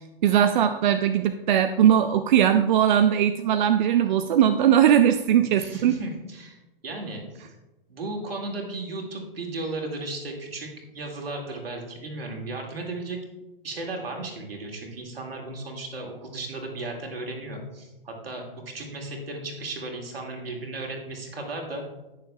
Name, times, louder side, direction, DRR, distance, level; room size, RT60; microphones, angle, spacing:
voice 1, 0.2-5.9, right 9 dB, 55° right, 9 dB, 0.5 m, -20 dB
voice 2, 5.6-7.5 7.9-13.2 13.6-21.8, right 2 dB, 80° right, 1 dB, 2.2 m, -35 dB
19.0 x 6.6 x 2.3 m, 1.1 s
figure-of-eight pair, 110°, 29 cm